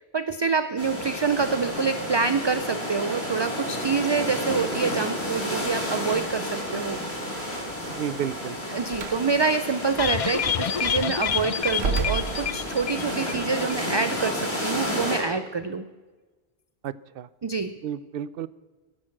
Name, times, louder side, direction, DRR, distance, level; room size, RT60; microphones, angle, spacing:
voice 1, 0.0-7.0 8.7-15.8 17.4-17.7, right 5 dB, 35° right, 11 dB, 0.4 m, -26 dB
sound 1, 0.8-15.2, equal, 80° left, 5.7 m, -31 dB
voice 2, 7.9-8.5 16.8-17.3 17.8-18.5, right 9 dB, 65° right, 18 dB, 0.8 m, -32 dB
Slam, 8.9-9.2 10.2-10.4 11.7-13.0, right 4 dB, 85° right, 1.3 m, -29 dB
sound 2, 10.0-13.4 13.7-13.8 14.1-14.2, left 8 dB, 50° left, 0.4 m, -28 dB
14.0 x 11.0 x 6.0 m, 1.3 s
omnidirectional pair, 1.0 m